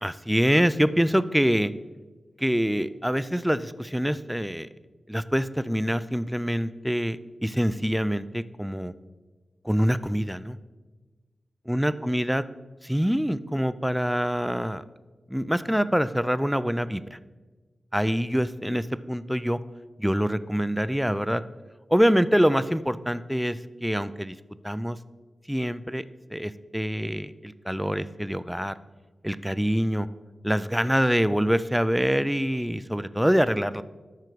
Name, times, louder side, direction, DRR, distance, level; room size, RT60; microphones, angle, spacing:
voice 1, 0.0-1.7 2.4-4.7 5.1-8.9 9.6-10.6 11.7-12.4 12.8-14.8 15.3-17.2 17.9-19.6 20.0-21.4 21.9-24.4 24.6-25.0 25.5-26.0 26.3-28.8 29.2-30.1 30.4-33.8, equal, ahead, 15 dB, 0.3 m, -25 dB
12.5 x 4.7 x 4.6 m, 1.3 s
wide cardioid pair, 105°, 0 cm